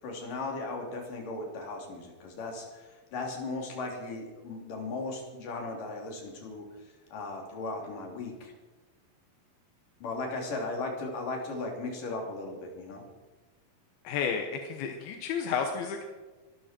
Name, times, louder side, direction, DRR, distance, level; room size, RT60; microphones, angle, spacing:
voice 1, 0.0-6.7 7.1-8.5 10.0-13.0, left 3 dB, 65° left, 1 dB, 4.8 m, -37 dB
voice 2, 14.0-16.0, left 6 dB, 85° left, 4 dB, 3.2 m, -31 dB
23.5 x 13.0 x 4.5 m, 1.3 s
omnidirectional pair, 4.2 m